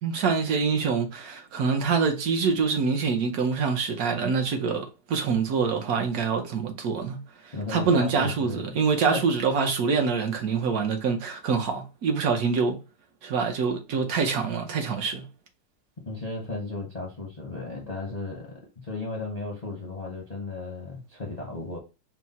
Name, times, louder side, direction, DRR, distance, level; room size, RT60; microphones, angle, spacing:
voice 1, 0.0-7.2 7.4-12.8 13.2-15.2, right 5 dB, 65° right, 1.1 m, -25 dB
voice 2, 7.5-8.8 9.1-9.2 16.1-21.8, left 3 dB, 35° left, 0.6 m, -35 dB
4.5 x 2.1 x 4.0 m
omnidirectional pair, 1.9 m